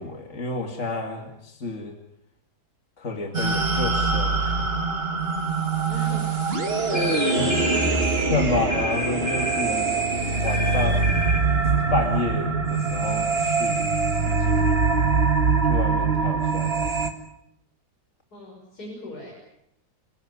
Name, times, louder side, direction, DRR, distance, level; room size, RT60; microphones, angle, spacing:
voice 1, 0.0-1.9 3.0-4.8 8.3-10.0 10.4-11.1 11.9-13.9 14.3-14.7 15.7-16.9, left 2 dB, 45° left, 3 dB, 2.8 m, -30 dB
sound 1, 3.3-17.1, right 4 dB, 35° right, 2.3 m, -23 dB
voice 2, 5.9-6.3 6.8-8.3 18.3-19.3, left 2 dB, 70° left, -2 dB, 6.7 m, -37 dB
sound 2, 6.9-7.9 8.7-9.7 10.5-11.5, left 1 dB, 25° left, 2.1 m, -30 dB
29.0 x 16.5 x 9.7 m, 0.83 s
omnidirectional pair, 1.7 m